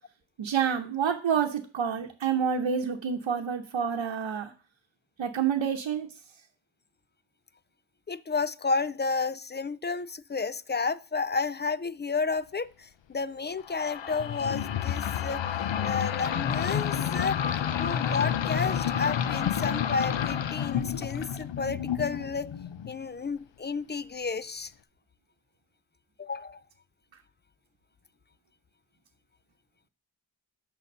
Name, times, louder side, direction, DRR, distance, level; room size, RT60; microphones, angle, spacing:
voice 1, 0.4-4.5 5.2-6.1, right 7 dB, 80° right, 0.9 m, -28 dB
voice 2, 8.1-15.4 15.8-17.4 17.8-22.6 22.9-24.7 26.2-26.6, left 4 dB, 25° left, 0.3 m, -31 dB
sound 1, 13.7-23.0, left 9 dB, 75° left, 0.7 m, -30 dB
6.8 x 5.7 x 6.6 m
wide cardioid pair, 95°, 45 cm